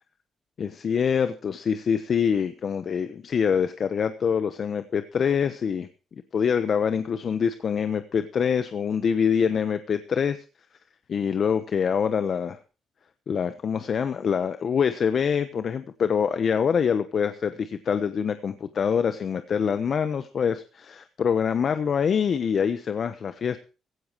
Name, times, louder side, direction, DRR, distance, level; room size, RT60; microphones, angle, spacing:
voice 1, 0.6-5.9 6.3-10.4 11.1-12.6 13.3-23.6, left 7 dB, 50° left, 11 dB, 1.0 m, -25 dB
16.0 x 15.5 x 3.1 m, 0.33 s
cardioid pair, 90°, 0 cm